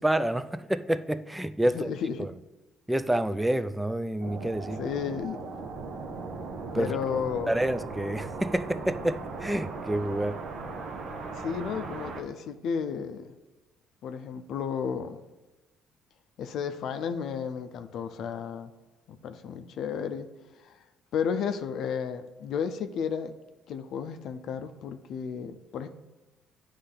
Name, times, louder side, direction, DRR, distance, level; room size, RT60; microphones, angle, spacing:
voice 1, 0.0-1.9 2.2-2.3 2.9-4.8 6.7-6.9 7.5-10.4, right 1 dB, 5° right, 0.3 m, -28 dB
voice 2, 1.7-2.3 4.8-5.4 6.7-7.5 11.4-13.3 14.0-15.2 16.4-18.7 19.1-20.3 20.6-20.8 21.1-23.3 23.7-25.9, left 7 dB, 70° left, 0.5 m, -33 dB
sound 1, 4.2-12.2, right 3 dB, 60° right, 0.8 m, -38 dB
9.6 x 3.2 x 3.9 m
cardioid pair, 90°, 0 cm